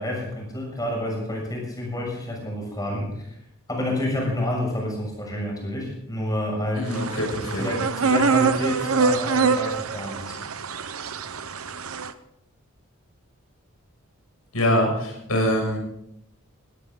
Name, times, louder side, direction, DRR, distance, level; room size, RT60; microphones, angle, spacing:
voice 1, 0.0-3.3 3.7-6.9 7.6-10.4, left 1 dB, 15° left, 0 dB, 6.8 m, -29 dB
voice 2, 6.8-7.6 14.5-15.8, equal, 85° left, 1 dB, 7.0 m, -24 dB
sound 1, 6.9-12.1, right 4 dB, 80° right, 1.0 m, -24 dB
19.0 x 17.5 x 3.9 m, 0.76 s
head